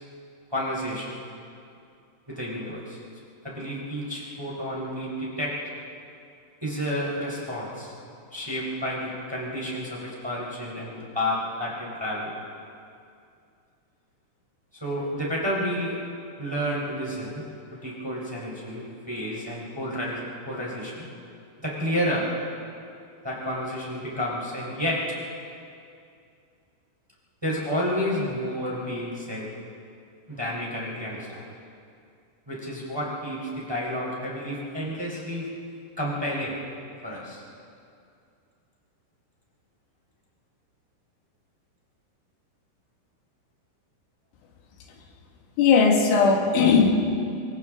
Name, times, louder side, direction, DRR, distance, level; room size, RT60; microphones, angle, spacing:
voice 1, 0.5-1.1 2.3-3.0 3.4-5.5 6.6-7.9 8.3-12.3 14.7-16.0 16.4-17.4 17.7-21.1 21.6-22.3 23.2-25.0 27.4-29.5 30.3-31.5 32.5-35.5 36.0-36.6 37.0-37.4, equal, 5° right, -4 dB, 3.2 m, -30 dB
voice 2, 45.6-46.9, left 5 dB, 85° left, 2 dB, 4.2 m, -18 dB
29.0 x 24.0 x 3.8 m, 2.5 s
omnidirectional pair, 5.3 m